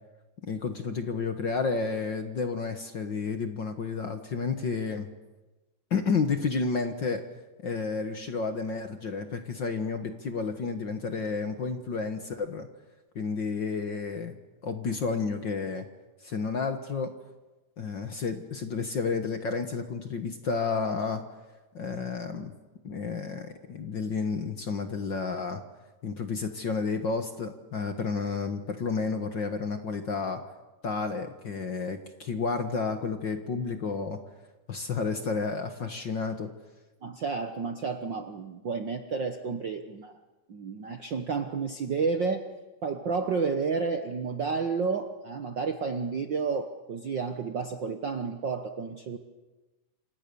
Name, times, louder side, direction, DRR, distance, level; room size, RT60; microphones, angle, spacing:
voice 1, 0.4-5.1 5.9-7.2 7.6-12.7 13.2-14.3 14.6-15.9 16.2-17.1 17.8-21.2 21.7-22.5 22.8-25.6 26.0-30.4 30.8-34.2 34.7-36.5, left 4 dB, 45° left, 7 dB, 1.7 m, -31 dB
voice 2, 37.0-40.2 40.5-42.5 42.8-49.2, right 5 dB, 55° right, 7 dB, 1.3 m, -31 dB
28.5 x 27.0 x 7.0 m, 1.2 s
omnidirectional pair, 3.5 m